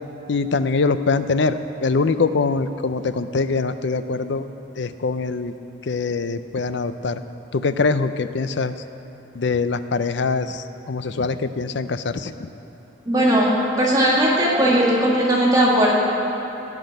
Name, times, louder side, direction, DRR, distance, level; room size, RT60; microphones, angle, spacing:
voice 1, 0.3-4.5 4.8-5.5 5.8-7.2 7.5-8.7 9.4-12.5, left 4 dB, 60° left, 11 dB, 0.5 m, -23 dB
voice 2, 13.1-13.5 13.8-15.9, right 1 dB, 20° right, -5 dB, 1.9 m, -18 dB
17.0 x 6.1 x 9.0 m, 3.0 s
head